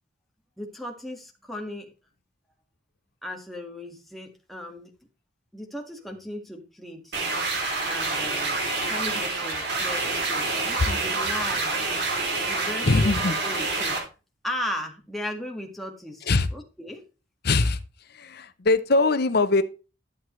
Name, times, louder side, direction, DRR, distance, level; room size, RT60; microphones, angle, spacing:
voice 1, 0.6-1.9 3.2-4.9 5.5-7.2 7.9-8.6 8.9-11.8 12.2-14.0 14.4-17.0, left 1 dB, ahead, 1.8 m, -36 dB
sound 1, 7.1-14.0, right 3 dB, 55° right, 3.2 m, -27 dB
voice 2, 12.8-13.4 16.3-16.5 17.4-17.8 18.2-19.6, left 3 dB, 55° left, 0.7 m, -21 dB
12.0 x 7.6 x 3.2 m
head